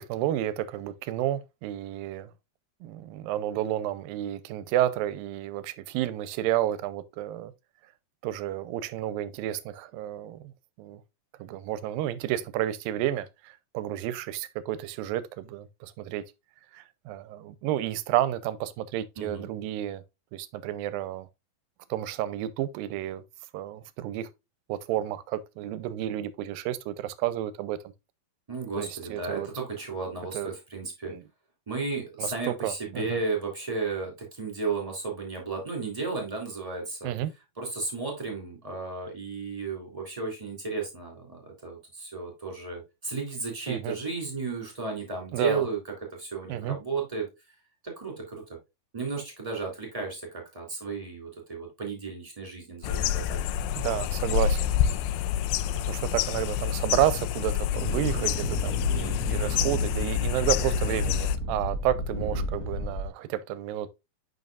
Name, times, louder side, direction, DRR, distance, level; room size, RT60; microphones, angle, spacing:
voice 1, 0.0-2.3 2.8-7.5 8.2-10.5 10.8-11.0 11.4-16.2 16.7-20.0 20.3-21.3 21.9-23.2 23.5-24.3 24.7-27.8 28.8-29.5 30.3-30.5 31.1-31.2 32.2-33.2 37.0-37.3 43.7-44.0 45.3-45.6 46.5-46.8 53.8-54.7 55.9-63.9, right 12 dB, 80° right, 2.4 m, -31 dB
voice 2, 19.2-19.5 28.5-31.1 31.7-37.1 37.6-45.8 46.2-47.3 47.8-48.6 48.9-53.4 62.2-62.5, right 4 dB, 10° right, 2.8 m, -34 dB
sound 1, 52.8-61.4, left 10 dB, 80° left, 2.3 m, -28 dB
sound 2, 57.7-63.1, left 1 dB, 60° left, 0.9 m, -32 dB
9.5 x 5.4 x 2.4 m
omnidirectional pair, 4.3 m